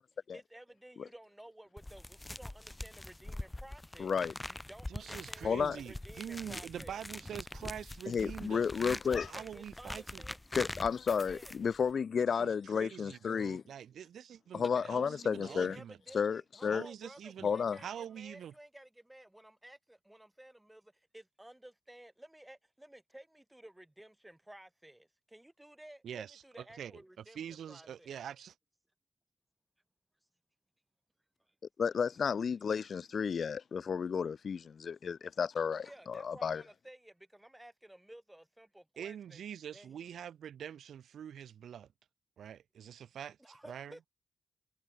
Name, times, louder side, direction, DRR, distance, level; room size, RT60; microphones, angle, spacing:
voice 1, 0.3-4.2 4.5-7.0 9.1-10.4 11.2-11.6 14.6-15.0 15.5-28.1 31.5-31.6 35.8-39.4 39.7-40.0 43.4-44.0, right 1 dB, 10° right, 2.5 m, -54 dB
sound 1, 1.8-11.9, left 1 dB, 15° left, 1.9 m, -44 dB
voice 2, 4.0-4.3 5.4-5.8 8.1-9.3 10.5-13.6 14.5-15.8 16.1-16.8 17.4-17.8 31.8-36.6, left 6 dB, 55° left, 0.5 m, -32 dB
voice 3, 4.9-9.0 9.3-10.2 12.2-16.0 16.7-17.5 17.8-18.5 26.0-26.9 27.2-28.6 39.0-41.9 42.4-44.0, right 9 dB, 90° right, 1.8 m, -45 dB
cardioid pair, 105°, 0 cm